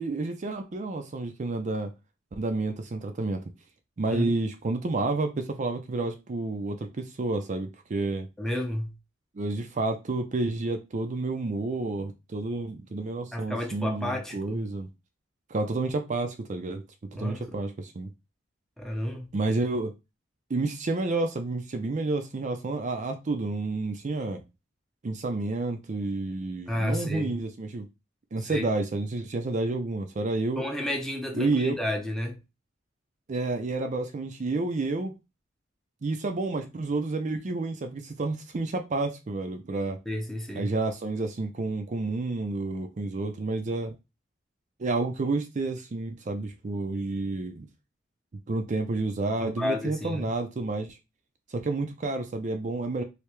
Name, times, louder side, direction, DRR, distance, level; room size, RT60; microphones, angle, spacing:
voice 1, 0.0-1.9 2.3-3.4 4.0-8.3 9.4-14.9 15.5-16.8 17.1-18.1 19.3-19.9 20.5-24.4 25.0-27.9 28.3-30.6 31.3-31.8 33.3-35.1 36.0-40.0 40.6-43.9 44.8-47.7 48.5-51.0 51.5-53.0, right 3 dB, 40° right, 0.4 m, -30 dB
voice 2, 8.4-8.9 13.3-14.6 17.1-17.6 18.8-19.3 26.7-27.4 28.4-28.7 30.6-32.4 40.1-40.7 49.4-50.3, left 1 dB, 5° left, 0.6 m, -31 dB
3.3 x 2.8 x 3.0 m
head